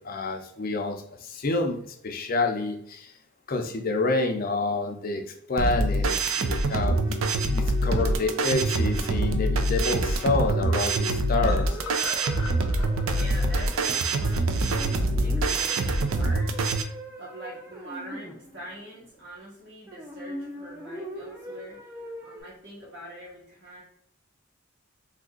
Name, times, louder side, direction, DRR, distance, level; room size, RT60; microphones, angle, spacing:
voice 1, 0.0-3.1 3.5-5.2 5.5-7.2 7.5-11.7, left 3 dB, 45° left, 4 dB, 0.5 m, -28 dB
sound 1, 5.6-16.8, right 2 dB, 75° right, 0.4 m, -25 dB
sound 2, 6.8-14.4 14.7-18.8 19.9-22.4, right 2 dB, 10° right, 0.4 m, -41 dB
sound 3, 11.5-15.5 15.8-15.9 16.2-16.3 16.6-16.7, left 2 dB, 90° left, 0.6 m, -41 dB
voice 2, 13.0-16.8 17.2-23.8, right 1 dB, 60° right, -6 dB, 1.0 m, -43 dB
2.7 x 2.4 x 3.7 m, 0.68 s
head